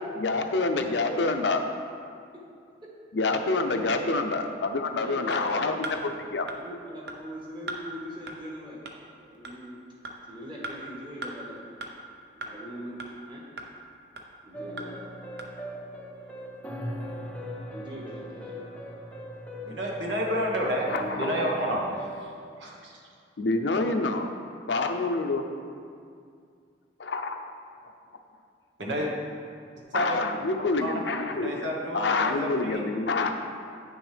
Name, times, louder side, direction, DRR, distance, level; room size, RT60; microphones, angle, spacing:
voice 1, 0.0-1.6 3.1-6.5 20.9-21.4 23.4-24.3 24.7-25.5 27.0-27.4 29.9-31.7 31.9-33.3, left 3 dB, 75° left, 6 dB, 0.6 m, -27 dB
voice 2, 1.0-1.4 2.3-2.4 3.7-4.1 4.9-5.8 6.5-8.8 9.2-9.8 10.3-11.6 12.3-13.4 14.4-15.0 17.7-18.7, equal, 25° right, -3 dB, 1.4 m, -41 dB
sound 1, 5.3-5.4 5.8-6.0 6.5-6.6 7.1-7.2 7.7-7.8 8.3-8.4 8.9-9.0 9.4-9.6 10.0-10.2 10.6-10.7 11.2-11.3 11.8-11.9 12.4-12.5 13.0-13.1 13.6-13.7 14.2-14.3 14.8-14.9 15.4-15.5, right 2 dB, 60° right, 0.7 m, -36 dB
sound 2, 14.5-22.2, equal, 10° left, 0.6 m, -39 dB
voice 3, 19.7-20.9 21.1-21.8 22.6-22.9 28.8-29.1 29.9-30.2 30.8-30.9 31.4-32.8, equal, 85° right, -2 dB, 1.3 m, -29 dB
9.0 x 6.2 x 3.4 m, 2.3 s
head